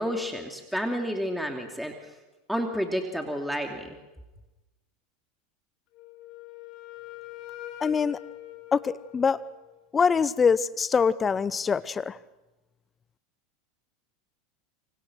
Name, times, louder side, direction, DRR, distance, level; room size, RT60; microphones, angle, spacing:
voice 1, 0.0-1.9 2.5-4.0, equal, ahead, 3 dB, 2.7 m, -30 dB
Wind instrument woodwind instrument, 5.9-9.8, left 14 dB, 55° left, 3.8 m, -44 dB
voice 2, 7.8-8.2 8.7-9.4 9.9-12.1, left 6 dB, 25° left, 18 dB, 0.7 m, -24 dB
29.0 x 25.0 x 6.3 m, 1.1 s
hypercardioid pair, 90°, 0 cm